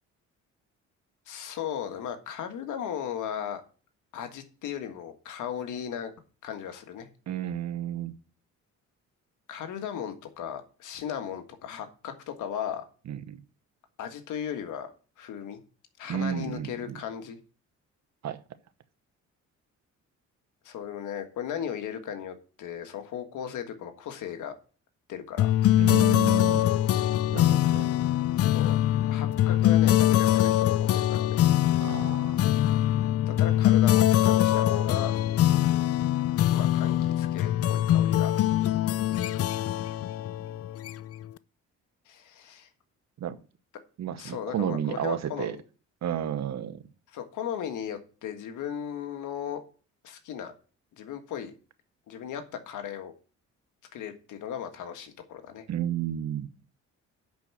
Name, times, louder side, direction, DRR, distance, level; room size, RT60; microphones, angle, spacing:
voice 1, 1.3-3.6 4.1-6.1 6.4-7.1 9.5-12.8 14.0-14.9 15.2-15.6 16.0-17.4 20.6-24.5 25.1-25.5 28.5-28.7 29.1-31.4 33.3-35.1 36.5-38.3 42.1-42.7 44.2-45.6 47.1-49.6 50.0-50.5 51.0-51.5 52.1-53.1 53.9-55.6, left 9 dB, 80° left, 1.6 m, -36 dB
voice 2, 7.3-8.1 13.1-13.4 16.1-17.0 18.2-18.4 25.8-26.7 27.3-27.9 31.8-32.3 43.2-43.4 44.0-45.6 46.0-46.8 55.7-56.5, right 9 dB, 60° right, 1.0 m, -32 dB
sound 1, 25.4-41.3, left 12 dB, 50° left, 0.5 m, -23 dB
10.5 x 4.6 x 7.1 m
cardioid pair, 90°, 30 cm